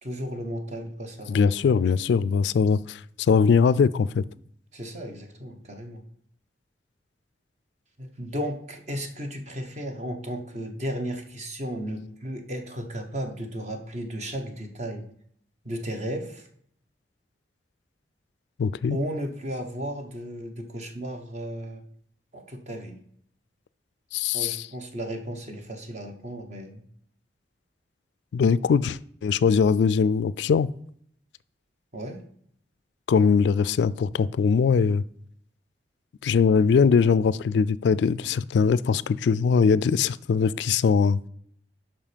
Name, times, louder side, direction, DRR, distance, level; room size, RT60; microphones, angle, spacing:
voice 1, 0.0-2.1 4.7-6.0 8.0-15.1 15.6-16.5 18.9-21.8 22.3-23.0 24.3-26.8 31.9-32.2, equal, 40° right, 1.2 m, -34 dB
voice 2, 1.3-4.2 18.6-19.0 24.1-24.6 28.3-30.7 33.1-35.0 36.2-41.2, left 5 dB, 75° left, 0.3 m, -21 dB
7.3 x 5.7 x 5.1 m
head